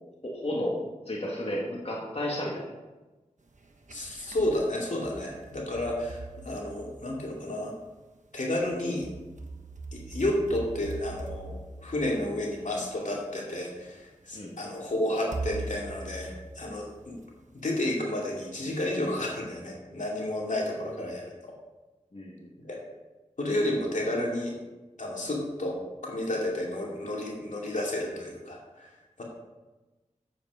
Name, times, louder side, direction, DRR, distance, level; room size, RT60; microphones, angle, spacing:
voice 1, 0.2-2.7 14.4-14.5 22.1-22.5, left 1 dB, 50° left, -4 dB, 2.0 m, -32 dB
sound 1, 3.6-4.5 5.0-7.4 8.6-13.0 13.8-13.9 15.3-17.2, right 3 dB, 70° right, 1.2 m, -41 dB
voice 2, 3.9-7.7 8.3-9.1 9.9-17.2 17.5-21.5 22.6-22.8 23.4-24.5 25.0-28.9 29.2-29.3, left 1 dB, 75° left, -2 dB, 2.6 m, -31 dB
8.5 x 8.2 x 5.0 m, 1.1 s
wide cardioid pair, 45°, 13 cm